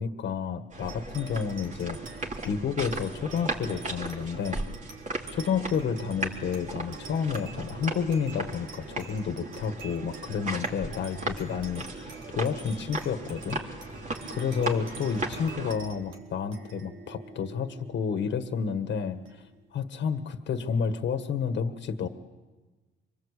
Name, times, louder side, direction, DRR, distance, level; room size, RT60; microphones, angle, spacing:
voice 1, 0.0-4.6 5.3-13.6 14.3-19.4 19.7-22.1, left 6 dB, 65° left, 8 dB, 1.7 m, -30 dB
sound 1, 0.7-15.7, right 2 dB, 40° right, 3.5 m, -37 dB
sound 2, 0.9-19.7, right 5 dB, 75° right, 4.4 m, -47 dB
26.0 x 23.5 x 8.4 m, 1.2 s
cardioid pair, 90°, 20 cm